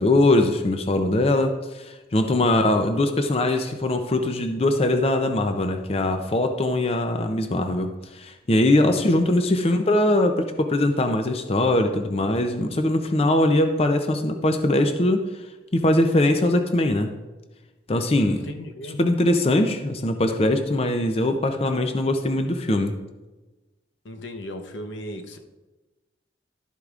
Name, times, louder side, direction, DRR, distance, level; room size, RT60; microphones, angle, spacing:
voice 1, 0.0-15.2 15.7-17.1 17.9-18.4 19.0-23.0, left 1 dB, 35° left, 6 dB, 0.5 m, -21 dB
voice 2, 2.4-2.8 8.9-9.1 9.5-9.7 18.2-19.0 24.0-25.4, equal, 90° left, 5 dB, 0.9 m, -37 dB
12.0 x 8.2 x 2.4 m, 1.2 s
head